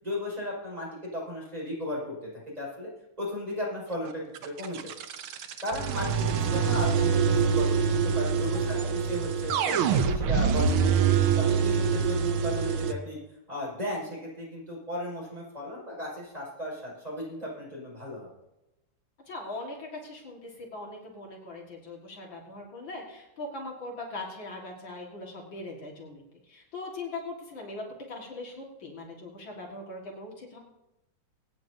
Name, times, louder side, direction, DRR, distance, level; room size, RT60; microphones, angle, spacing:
voice 1, 0.0-2.2 2.5-2.9 3.2-4.9 5.6-9.8 10.0-11.0 11.4-13.2 13.5-18.3, left 1 dB, 20° right, -5 dB, 5.5 m, -35 dB
sound 1, 4.3-12.9, right 6 dB, 85° right, 1.7 m, -25 dB
voice 2, 8.5-9.0 19.3-30.6, left 2 dB, 65° left, -1 dB, 2.6 m, -40 dB
24.0 x 9.3 x 2.8 m, 0.92 s
omnidirectional pair, 2.2 m